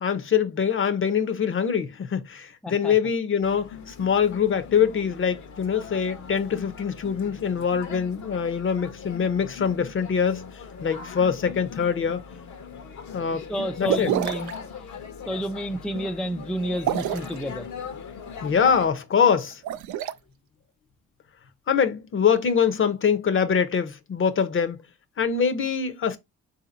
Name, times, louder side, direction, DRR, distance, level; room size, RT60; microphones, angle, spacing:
voice 1, 0.0-10.4 10.8-12.2 13.1-13.5 13.8-14.1 18.4-19.6 21.7-24.8 25.2-26.2, left 7 dB, 40° left, 0.7 m, -24 dB
voice 2, 2.6-3.0 13.1-14.5 15.3-17.7, equal, ahead, 0.4 m, -30 dB
sound 1, 3.4-18.9, left 6 dB, 70° left, 1.0 m, -40 dB
sound 2, 13.8-14.5 16.7-17.4 19.5-20.1, right 11 dB, 75° right, 0.4 m, -27 dB
3.8 x 2.8 x 3.8 m
cardioid pair, 90°, 30 cm